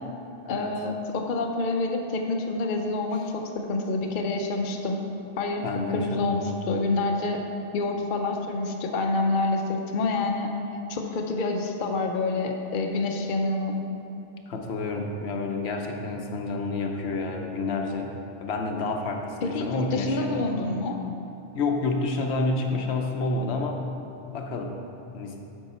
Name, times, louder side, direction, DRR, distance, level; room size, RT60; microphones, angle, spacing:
voice 1, 0.5-5.0 5.4-5.7 5.9-7.4 7.7-10.5 10.9-13.8 19.4-21.0, left 3 dB, 55° left, 2 dB, 0.7 m, -27 dB
voice 2, 5.6-6.5 14.5-18.1 18.4-20.5 21.5-23.8 24.3-24.7 25.1-25.4, left 3 dB, 80° left, 3 dB, 1.0 m, -29 dB
8.1 x 6.4 x 4.3 m, 2.9 s
omnidirectional pair, 1.1 m